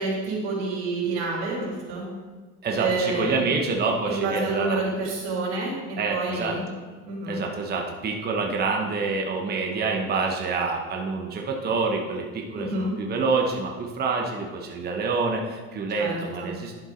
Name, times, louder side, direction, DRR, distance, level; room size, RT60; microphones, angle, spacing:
voice 1, 0.0-2.1 2.8-3.4 4.1-6.6 7.0-7.4 12.6-12.9 16.0-16.5, right 3 dB, 90° right, -3 dB, 3.4 m, -28 dB
voice 2, 2.6-4.8 6.0-6.6 7.3-16.8, right 4 dB, 30° right, 1 dB, 1.1 m, -27 dB
11.0 x 7.4 x 3.9 m, 1.4 s
cardioid pair, 130°, 34 cm